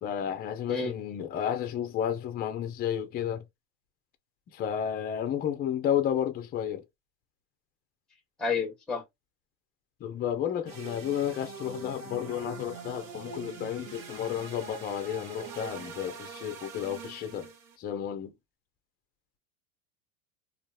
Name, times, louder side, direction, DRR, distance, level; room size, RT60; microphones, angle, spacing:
voice 1, 0.0-3.4 4.5-6.8 10.0-17.5 17.8-18.3, left 9 dB, 25° left, 0.4 m, -32 dB
voice 2, 8.4-9.0, left 5 dB, ahead, 0.8 m, -30 dB
sound 1, 10.6-17.8, right 5 dB, 70° right, 1.1 m, -43 dB
2.7 x 2.4 x 2.2 m
supercardioid pair, 120°, 41 cm